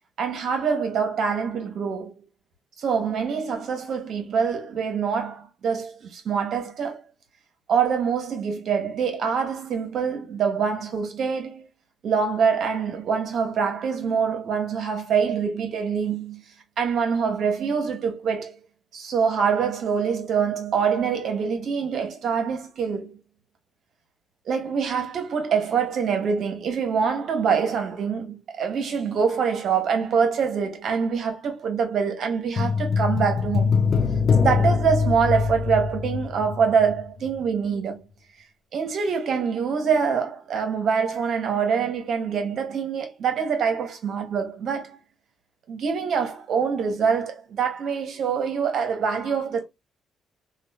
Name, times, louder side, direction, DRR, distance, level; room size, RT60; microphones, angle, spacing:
voice 1, 0.2-2.1 2.8-7.0 7.7-11.7 12.0-16.4 16.8-18.5 18.9-23.1 24.5-33.8 34.3-38.1 38.7-45.0 45.7-49.6, right 6 dB, 65° right, 1.1 m, -25 dB
sound 1, 32.6-37.0 37.3-37.4, left 5 dB, 50° left, 0.4 m, -23 dB
3.1 x 2.4 x 2.2 m
cardioid pair, 90°, 0 cm